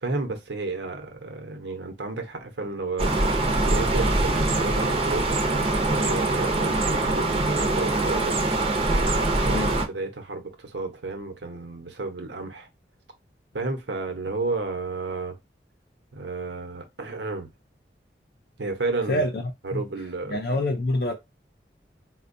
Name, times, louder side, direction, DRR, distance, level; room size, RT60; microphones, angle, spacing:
voice 1, 0.0-8.4 8.9-12.7 13.5-15.4 16.1-17.5 18.6-19.2 19.6-20.4, right 3 dB, 80° right, 0.9 m, -32 dB
sound 1, 3.0-9.9, right 2 dB, 35° right, 0.6 m, -23 dB
voice 2, 19.1-19.4 19.7-19.8 20.3-21.1, left 1 dB, 60° left, 0.5 m, -26 dB
4.3 x 2.2 x 2.6 m
head